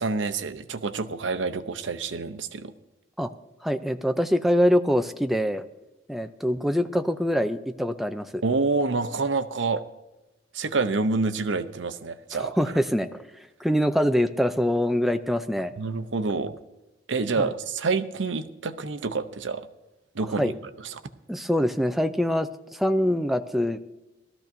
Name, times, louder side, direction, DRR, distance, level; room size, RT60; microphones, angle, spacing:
voice 1, 0.0-2.7 8.4-9.8 10.5-12.6 15.8-16.6 17.1-19.7 20.1-21.0, right 4 dB, 75° right, 10 dB, 0.7 m, -27 dB
voice 2, 3.6-5.6 6.1-8.4 12.3-13.1 13.6-15.7 17.4-17.5 20.4-20.5 21.3-23.8, equal, ahead, 7 dB, 0.5 m, -24 dB
19.0 x 13.5 x 2.7 m, 1.0 s
head